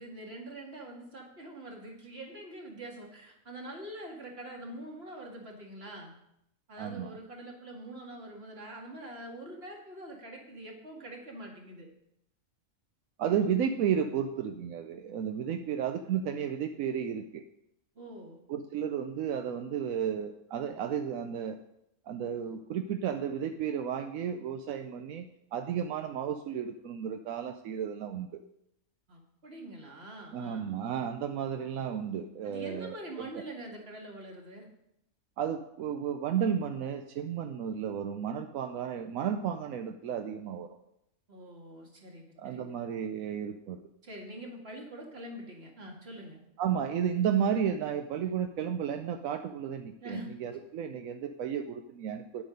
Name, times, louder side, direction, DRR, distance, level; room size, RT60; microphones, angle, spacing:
voice 1, 0.0-6.1 6.7-11.9 13.2-13.5 18.0-18.4 29.1-30.8 32.4-34.7 41.3-42.8 44.0-46.4 50.0-50.3, right 1 dB, 50° right, 0 dB, 2.3 m, -44 dB
voice 2, 6.8-7.2 13.2-17.4 18.5-21.6 22.1-28.4 30.3-33.4 35.4-40.8 42.4-43.8 46.6-52.4, right 8 dB, 85° right, 7 dB, 1.1 m, -33 dB
10.0 x 8.4 x 5.2 m, 0.79 s
omnidirectional pair, 1.4 m